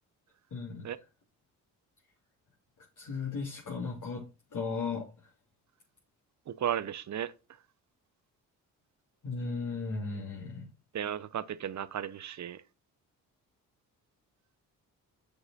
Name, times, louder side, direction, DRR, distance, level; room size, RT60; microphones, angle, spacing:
voice 1, 0.5-0.9 3.0-5.1 9.2-10.7, left 4 dB, 50° left, 2.6 m, -36 dB
voice 2, 6.5-7.3 10.9-12.6, right 10 dB, 45° right, 0.9 m, -34 dB
6.8 x 6.5 x 4.1 m
hypercardioid pair, 50°, 40 cm